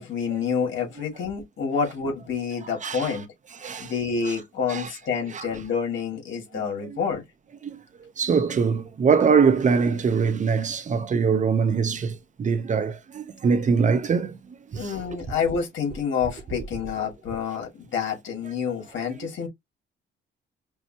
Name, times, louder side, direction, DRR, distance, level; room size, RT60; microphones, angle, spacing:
voice 1, 0.0-3.2 3.8-7.2 14.7-19.5, left 6 dB, 75° left, 2.2 m, -28 dB
voice 2, 2.8-3.1 3.6-3.9 4.7-4.9 5.3-5.4 6.9-7.0 7.6-7.8 8.2-14.3 14.7-15.0, right 5 dB, 40° right, 0.7 m, -23 dB
5.4 x 2.2 x 2.8 m
cardioid pair, 90°, 20 cm